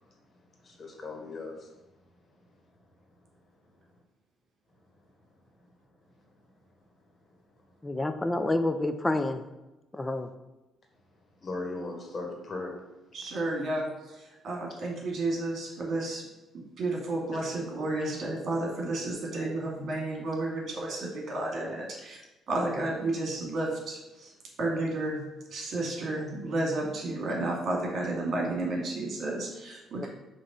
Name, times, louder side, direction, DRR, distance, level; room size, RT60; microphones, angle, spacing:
voice 1, 0.6-1.7 11.4-12.7, left 2 dB, 40° left, 0 dB, 1.9 m, -37 dB
voice 2, 7.8-9.4 9.9-10.3 30.0-30.1, left 2 dB, 15° left, 8 dB, 0.6 m, -28 dB
voice 3, 13.1-13.8 14.2-16.2 16.5-22.2 22.5-24.3 24.6-25.2 25.5-30.1, right 2 dB, 60° right, -1 dB, 2.1 m, -32 dB
6.3 x 3.2 x 5.4 m, 1.0 s
cardioid pair, 85°, 0 cm